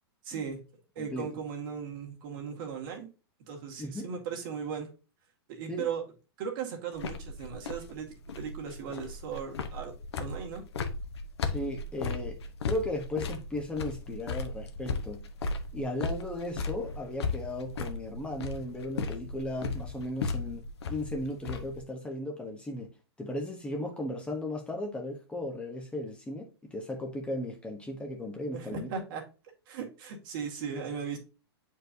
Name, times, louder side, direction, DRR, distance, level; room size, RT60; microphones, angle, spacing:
voice 1, 0.2-0.6 1.0-3.1 3.5-4.9 5.5-6.0 6.4-8.1 8.4-9.9 10.2-10.6 28.5-29.2 29.7-31.2, right 7 dB, 55° right, 2.1 m, -37 dB
voice 2, 1.0-1.3 3.8-4.1 5.7-5.9 11.4-12.4 12.6-15.2 15.7-22.9 23.2-29.0, left 1 dB, 10° left, 1.0 m, -36 dB
sound 1, 7.0-21.8, left 4 dB, 80° left, 1.0 m, -36 dB
7.8 x 4.6 x 2.7 m
hypercardioid pair, 130°, 14 cm